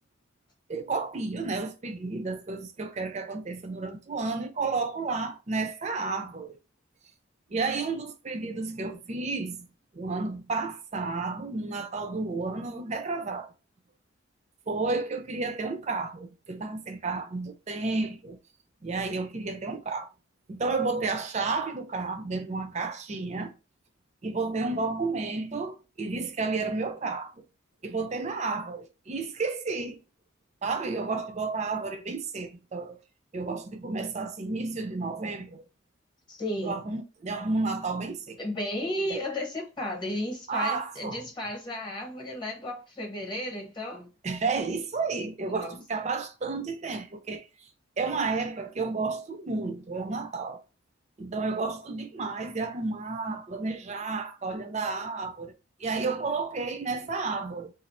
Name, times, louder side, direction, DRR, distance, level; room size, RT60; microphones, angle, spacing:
voice 1, 0.7-6.6 7.5-9.7 9.9-13.5 14.7-18.4 18.8-20.1 20.5-23.5 24.2-27.4 27.8-30.0 30.6-33.0 33.3-35.6 36.6-38.4 39.1-39.2 40.5-41.2 44.2-47.5 48.0-50.6 51.2-55.5 55.8-57.7, right 3 dB, 35° right, 0.5 m, -31 dB
voice 2, 36.3-36.8 38.4-44.1 45.5-45.8, left 1 dB, 25° left, 0.9 m, -34 dB
2.5 x 2.4 x 4.1 m
head